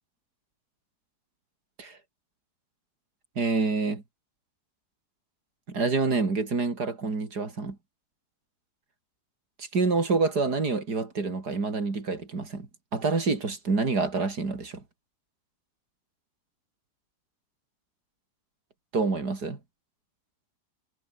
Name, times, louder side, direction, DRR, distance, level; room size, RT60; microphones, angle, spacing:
voice 1, 3.4-4.0 5.7-7.8 9.6-14.8 18.9-19.6, right 4 dB, 85° right, 4.1 m, -27 dB
omnidirectional pair, 1.7 m